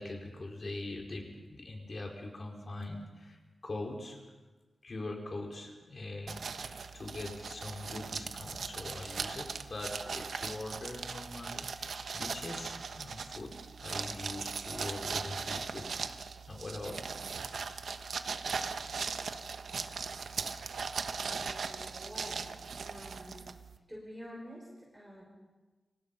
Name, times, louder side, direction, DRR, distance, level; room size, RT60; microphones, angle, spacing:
voice 1, 0.0-3.4 3.6-4.2 4.8-13.5 13.8-15.8 16.5-17.1, left 2 dB, 40° left, 1 dB, 5.2 m, -42 dB
sound 1, 6.3-23.8, right 5 dB, 75° right, 1.3 m, -39 dB
voice 2, 21.4-22.5 22.8-23.6 23.9-25.2, equal, 5° right, -3 dB, 6.1 m, -48 dB
29.5 x 26.0 x 5.7 m, 1.3 s
wide cardioid pair, 145°, 0 cm